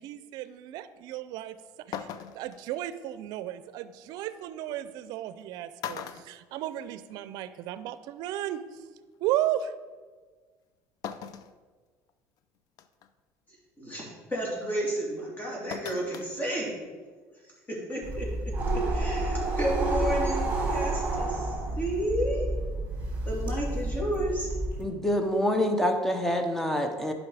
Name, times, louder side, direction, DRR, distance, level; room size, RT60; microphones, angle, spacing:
voice 1, 0.0-2.1 2.3-8.8 9.2-9.7, right 12 dB, 70° right, 14 dB, 0.5 m, -34 dB
sound 1, 1.4-1.5 1.9-2.6 4.2-4.3 5.3-5.4 5.8-7.2 7.5-7.6 8.9-9.0 11.0-11.5 12.1-12.2 12.8-13.1 15.7-16.3 16.6-16.7, left 8 dB, 60° left, 0.5 m, -39 dB
voice 2, 13.8-16.8 17.4-22.5 23.2-24.5, equal, 25° left, -3 dB, 2.9 m, -32 dB
sound 2, 18.0-24.9, right 2 dB, 20° right, 3.0 m, -29 dB
voice 3, 24.8-27.1, left 1 dB, 5° left, 5 dB, 0.9 m, -26 dB
10.5 x 5.3 x 4.9 m, 1.4 s
cardioid pair, 125°, 7 cm